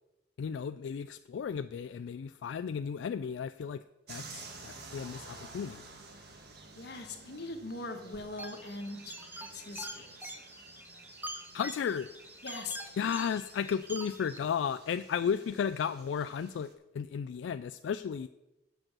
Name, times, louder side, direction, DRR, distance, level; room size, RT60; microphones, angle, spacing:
voice 1, 0.4-3.8 4.1-5.8 11.5-12.1 13.0-16.7 16.9-18.3, left 7 dB, 90° left, 12 dB, 0.3 m, -34 dB
sound 1, 4.1-16.7, right 3 dB, 60° right, 1.6 m, -52 dB
voice 2, 6.7-9.1 9.5-10.3 12.4-12.8, left 3 dB, 65° left, 5 dB, 1.4 m, -41 dB
sound 2, 8.4-14.4, right 1 dB, 10° right, 1.0 m, -45 dB
7.8 x 6.3 x 7.4 m, 0.98 s
head